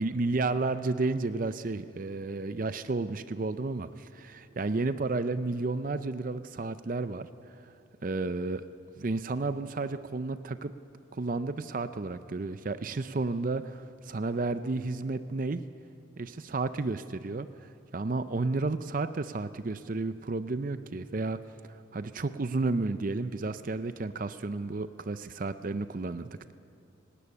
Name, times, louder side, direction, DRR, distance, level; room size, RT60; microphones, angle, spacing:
voice 1, 0.0-7.7 8.0-8.6 9.0-10.7 11.1-15.6 16.2-21.4 21.7-26.5, right 3 dB, 40° right, 12 dB, 0.5 m, -32 dB
18.0 x 17.0 x 9.8 m, 2.5 s
head